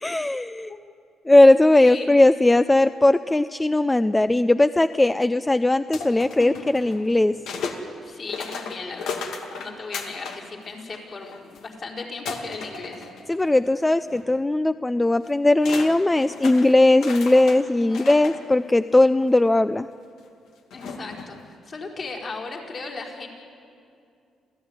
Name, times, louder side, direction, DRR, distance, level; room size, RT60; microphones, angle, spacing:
voice 1, 0.0-0.7 1.3-7.3 13.3-19.9, left 2 dB, 15° left, 12 dB, 0.5 m, -18 dB
voice 2, 1.7-2.2 6.4-6.8 8.0-9.3 9.6-13.1 17.8-18.0 20.7-23.3, left 3 dB, 45° left, -1 dB, 4.7 m, -36 dB
sound 1, 5.9-7.8 8.3-10.4 10.8-11.6 12.3-13.7 14.0-14.2 15.2-15.3 15.6-18.4 19.2-19.3 20.7-21.4, left 5 dB, 80° left, 2.3 m, -35 dB
27.0 x 15.5 x 9.6 m, 2.5 s
cardioid pair, 90°, 0 cm